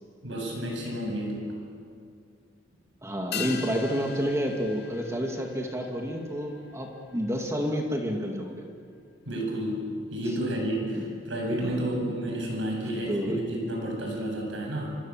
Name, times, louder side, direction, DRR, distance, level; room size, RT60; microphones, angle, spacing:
voice 1, 0.2-1.5 9.2-14.9, right 1 dB, 70° right, 0 dB, 7.7 m, -31 dB
voice 2, 3.0-8.7 11.0-11.1 11.6-11.9 13.1-13.4, equal, 15° right, 2 dB, 2.3 m, -30 dB
sound 1, 3.3-8.0 8.3-8.4, left 7 dB, 60° left, 2.5 m, -41 dB
28.5 x 26.5 x 7.4 m, 2.4 s
head